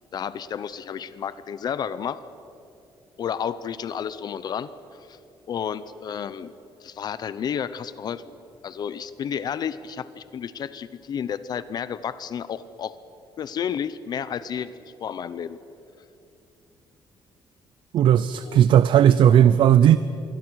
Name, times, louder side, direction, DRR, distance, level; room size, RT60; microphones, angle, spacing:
voice 1, 0.1-2.2 3.2-5.2 5.5-6.5 6.8-8.3 8.6-13.0 13.4-14.7 15.0-15.6 18.4-18.6, left 8 dB, 45° left, 14 dB, 0.7 m, -31 dB
voice 2, 17.9-20.0, right 10 dB, 60° right, 15 dB, 0.6 m, -16 dB
26.0 x 23.0 x 6.3 m, 2.7 s
cardioid pair, 160°, 10 cm